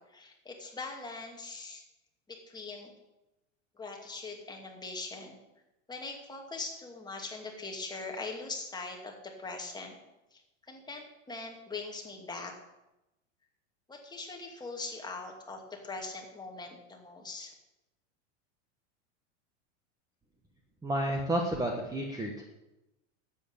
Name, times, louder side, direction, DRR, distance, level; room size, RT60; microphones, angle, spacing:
voice 1, 0.1-1.8 2.3-2.9 3.8-5.4 5.9-10.0 10.3-10.4 10.7-12.5 13.9-17.5, left 3 dB, 10° left, 1 dB, 2.4 m, -41 dB
voice 2, 20.8-22.4, right 1 dB, 10° right, 1 dB, 1.5 m, -31 dB
12.0 x 8.4 x 8.7 m, 0.96 s
supercardioid pair, 140°, 37 cm